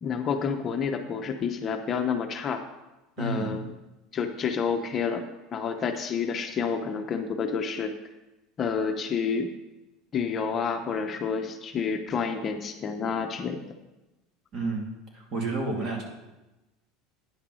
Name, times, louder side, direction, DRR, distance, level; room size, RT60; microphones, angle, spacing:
voice 1, 0.0-2.6 3.2-3.7 4.1-7.9 8.6-9.5 10.1-13.6, left 6 dB, 30° left, 5 dB, 0.7 m, -29 dB
voice 2, 3.2-3.5 14.5-14.9 15.1-16.0, right 3 dB, 45° right, 0 dB, 2.4 m, -30 dB
9.7 x 5.9 x 5.5 m, 1.0 s
supercardioid pair, 130°, 0 cm